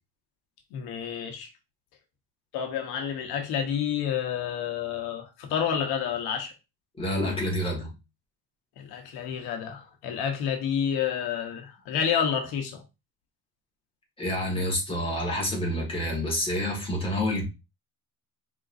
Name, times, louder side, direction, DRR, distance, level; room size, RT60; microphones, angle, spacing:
voice 1, 0.7-1.5 2.5-6.5 8.8-12.8, left 8 dB, 90° left, 1.1 m, -29 dB
voice 2, 7.0-7.9 14.2-17.4, left 1 dB, 15° left, 1.8 m, -28 dB
5.0 x 3.7 x 2.6 m
cardioid pair, 150°, 37 cm